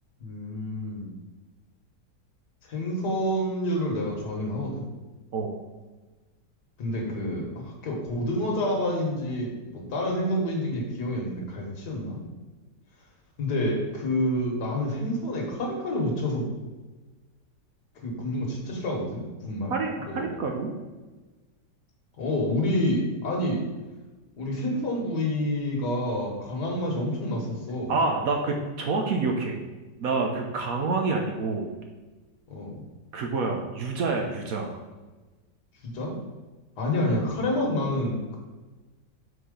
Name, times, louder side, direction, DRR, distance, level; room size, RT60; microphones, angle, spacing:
voice 1, 0.2-1.1 2.7-4.8 6.8-12.2 13.4-16.5 18.0-19.7 20.0-20.3 22.2-23.6 24.4-27.9 32.5-32.8 35.8-36.2 36.8-38.4, left 1 dB, 70° left, 0 dB, 1.8 m, -28 dB
voice 2, 19.7-20.7 27.9-29.6 30.0-31.7 33.1-34.8, right 3 dB, 65° right, 2 dB, 1.0 m, -27 dB
4.7 x 4.3 x 5.1 m, 1.2 s
omnidirectional pair, 1.9 m